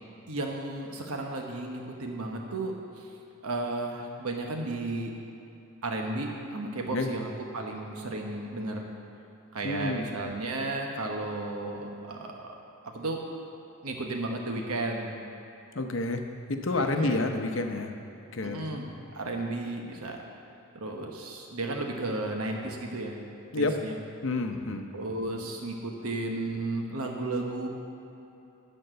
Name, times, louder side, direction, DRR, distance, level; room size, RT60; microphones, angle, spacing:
voice 1, 0.3-3.1 3.4-5.1 5.8-8.8 9.5-12.5 12.8-13.2 13.8-15.1 16.7-17.3 18.4-20.2 20.7-23.2 23.6-24.0 24.9-27.7, right 2 dB, 90° right, 1 dB, 1.1 m, -34 dB
voice 2, 9.6-10.0 15.7-16.2 16.5-17.9 18.3-18.8 23.5-23.7 24.2-24.9, left 2 dB, 60° left, 5 dB, 0.7 m, -29 dB
12.0 x 4.4 x 7.8 m, 2.9 s
head